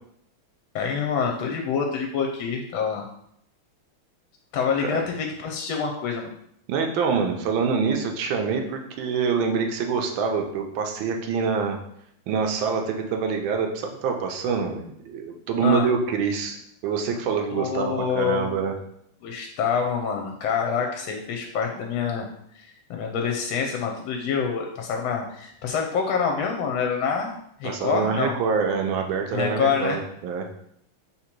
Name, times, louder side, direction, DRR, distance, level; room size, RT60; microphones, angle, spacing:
voice 1, 0.7-3.0 4.5-6.3 15.6-15.9 17.5-18.5 19.2-22.3 22.5-27.3 27.6-28.4 29.3-30.0, left 6 dB, 75° left, 2 dB, 1.3 m, -26 dB
voice 2, 6.7-11.8 12.3-16.6 16.8-18.7 27.6-30.6, right 5 dB, 75° right, 3 dB, 1.3 m, -25 dB
3.8 x 2.9 x 4.4 m, 0.71 s
omnidirectional pair, 2.4 m